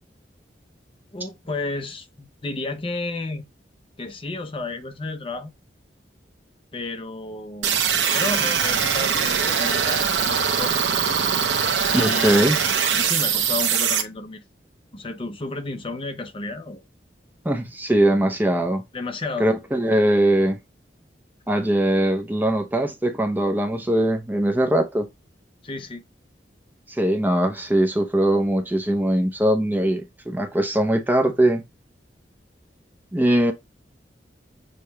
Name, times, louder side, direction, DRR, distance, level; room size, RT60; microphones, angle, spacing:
voice 1, 1.1-3.5 4.0-5.5 6.7-7.9 8.1-10.8 11.9-12.5 12.9-14.4 14.9-16.8 18.9-19.5 25.6-26.0, left 3 dB, 30° left, 0.6 m, -32 dB
sound 1, 7.6-14.0, right 7 dB, 90° right, 0.7 m, -22 dB
voice 2, 11.9-12.6 17.4-18.8 19.4-20.6 21.5-25.1 26.9-31.6 33.1-33.5, right 1 dB, 10° right, 0.6 m, -21 dB
6.6 x 2.2 x 2.8 m
head